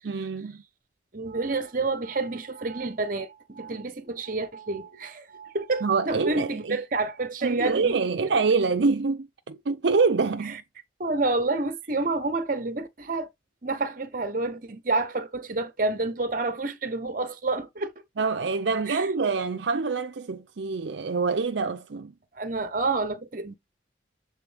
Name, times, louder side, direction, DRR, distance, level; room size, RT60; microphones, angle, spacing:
voice 1, 0.0-0.6 5.8-6.8 7.4-10.6 18.2-22.1, right 4 dB, 70° right, 0.5 m, -26 dB
voice 2, 1.1-8.0 11.0-13.3 13.6-17.9 18.9-19.3 22.3-23.5, right 3 dB, 45° right, 0.9 m, -29 dB
7.5 x 3.7 x 3.4 m
head